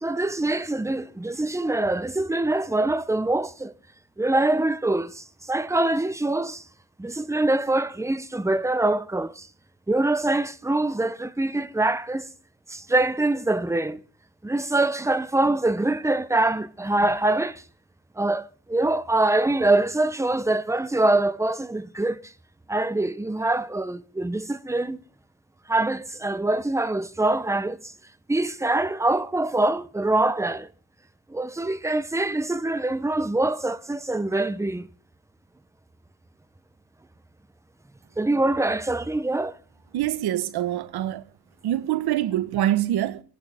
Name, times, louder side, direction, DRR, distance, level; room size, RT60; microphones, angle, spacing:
voice 1, 0.0-3.7 4.2-6.6 7.0-9.5 9.9-12.3 12.7-14.0 14.4-17.6 18.2-22.3 22.7-25.0 25.7-27.9 28.3-30.7 31.3-34.9 38.2-39.6, right 2 dB, 5° right, 1.0 m, -24 dB
voice 2, 39.9-41.2 41.6-43.2, right 12 dB, 75° right, 1.4 m, -25 dB
26.0 x 11.0 x 3.6 m
cardioid pair, 115°, 38 cm